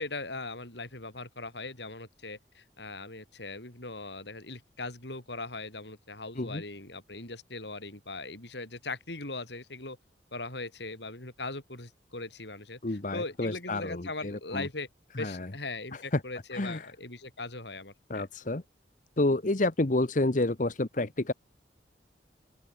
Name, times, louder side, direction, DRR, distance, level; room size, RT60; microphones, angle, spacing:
voice 1, 0.0-10.0 10.3-14.9 15.2-18.3, left 3 dB, 70° left, 6.4 m, -40 dB
voice 2, 12.8-14.7 15.2-15.5 16.1-16.2 16.5-16.9 18.1-18.6 19.2-21.3, left 2 dB, 45° left, 1.1 m, -29 dB
open air
head